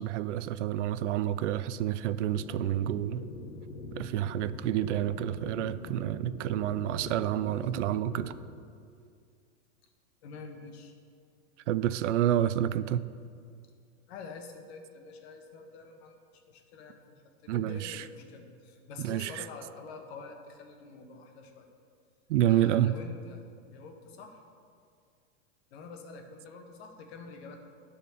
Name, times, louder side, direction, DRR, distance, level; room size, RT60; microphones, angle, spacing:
voice 1, 0.0-3.3 3.9-8.3 11.7-13.1 17.5-18.1 19.0-19.5 22.3-22.9, right 12 dB, 70° right, 15 dB, 0.5 m, -29 dB
sound 1, 2.3-8.4, left 3 dB, 90° left, 1.4 m, -43 dB
voice 2, 10.2-10.9 14.1-16.1 16.5-17.0 17.4-21.7 22.5-24.4 25.7-27.6, left 4 dB, 55° left, 4 dB, 1.4 m, -47 dB
10.5 x 4.4 x 6.6 m, 2.3 s
hypercardioid pair, 135°, 37 cm